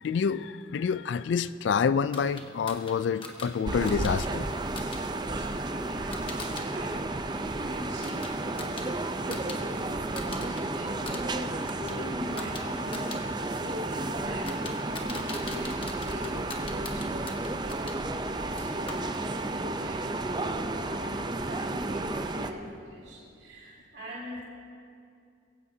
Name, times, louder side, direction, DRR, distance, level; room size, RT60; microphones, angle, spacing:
voice 1, 0.0-4.5 9.3-9.4 11.8-12.1, left 6 dB, 75° left, 15 dB, 0.3 m, -28 dB
sound 1, 2.1-6.7 7.0-9.6 9.9-10.6 10.9-18.0 18.6-19.5, left 3 dB, 30° left, 1.3 m, -44 dB
sound 2, 3.7-22.5, right 2 dB, 25° right, 0.5 m, -32 dB
voice 2, 5.4-9.0 9.3-17.8 18.0-24.4, equal, 65° right, -4 dB, 2.3 m, -41 dB
22.0 x 16.0 x 2.8 m, 2.4 s
head